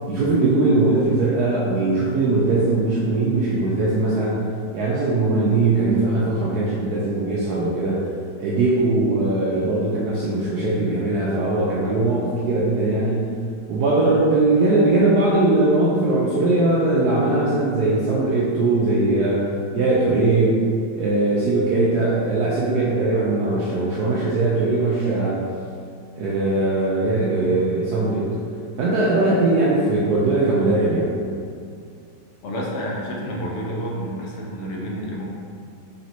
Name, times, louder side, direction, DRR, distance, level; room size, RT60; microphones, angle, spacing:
voice 1, 0.1-4.4 4.7-8.0 8.4-13.3 13.7-19.5 19.7-20.6 20.9-25.4 26.2-28.3 28.8-31.1, right 2 dB, 70° right, -6 dB, 1.0 m, -20 dB
voice 2, 32.4-35.2, equal, 65° left, -3 dB, 0.7 m, -29 dB
4.0 x 3.4 x 2.9 m, 2.3 s
omnidirectional pair, 2.0 m